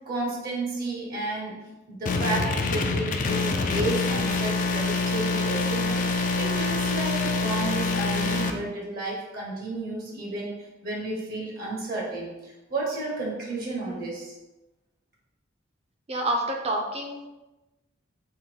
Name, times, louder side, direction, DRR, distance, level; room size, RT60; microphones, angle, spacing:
voice 1, 0.0-1.5 1.9-10.5 10.8-14.3, right 2 dB, 45° right, -3 dB, 0.9 m, -32 dB
sound 1, 2.0-8.5, left 3 dB, 40° left, 0.3 m, -26 dB
voice 2, 16.1-17.3, right 1 dB, 30° right, 1 dB, 0.6 m, -28 dB
3.8 x 2.2 x 4.4 m, 1.0 s
head